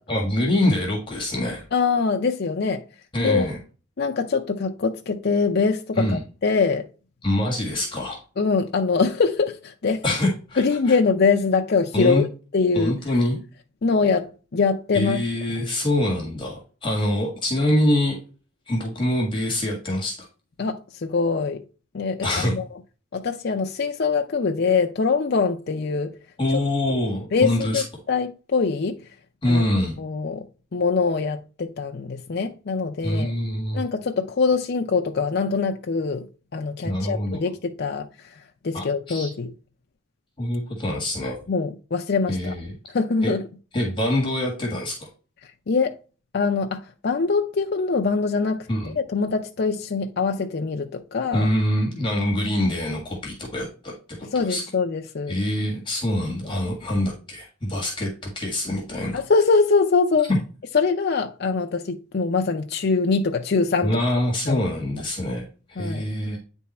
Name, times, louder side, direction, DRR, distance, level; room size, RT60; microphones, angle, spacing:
voice 1, 0.1-1.6 3.1-3.6 6.0-6.2 7.2-8.2 10.0-10.6 10.9-11.0 11.9-12.2 12.7-13.4 14.9-18.2 18.7-20.3 22.2-22.5 26.4-27.8 29.4-29.9 33.0-33.9 36.8-37.4 38.7-39.3 40.4-41.4 42.3-42.7 43.2-43.3 43.7-45.0 48.7-48.9 51.3-53.9 54.2-54.6 55.3-59.2 63.8-66.4, left 1 dB, 25° left, 1.7 m, -25 dB
voice 2, 1.7-2.8 3.2-3.5 4.0-6.9 8.4-10.0 10.6-12.3 12.5-13.0 13.8-15.2 20.6-21.6 21.9-22.6 23.1-26.2 26.9-27.0 27.3-29.1 29.5-29.7 30.0-33.3 33.7-36.3 36.5-39.5 41.5-42.6 42.9-43.5 45.4-46.0 46.3-51.5 54.3-55.4 59.1-60.3 60.7-64.0 64.5-64.7 65.8-66.0, left 4 dB, 55° left, 0.5 m, -23 dB
9.3 x 3.6 x 4.1 m
head